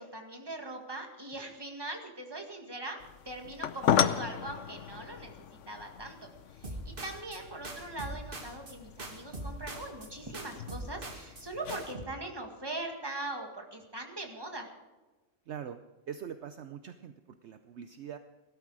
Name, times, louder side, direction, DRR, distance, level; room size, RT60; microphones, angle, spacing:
voice 1, 0.0-3.0 3.2-14.7, right 2 dB, 20° right, 3 dB, 2.0 m, -41 dB
sound 1, 3.0-11.9, left 9 dB, 70° left, 1.0 m, -35 dB
sound 2, 6.6-7.4 7.6-8.7 9.0-10.1 10.3-11.4 11.7-12.0, right 1 dB, 45° right, 2.1 m, -41 dB
voice 2, 15.5-15.8 16.1-18.2, right 8 dB, 65° right, 9 dB, 0.9 m, -43 dB
18.0 x 12.5 x 4.9 m, 1.2 s
omnidirectional pair, 1.3 m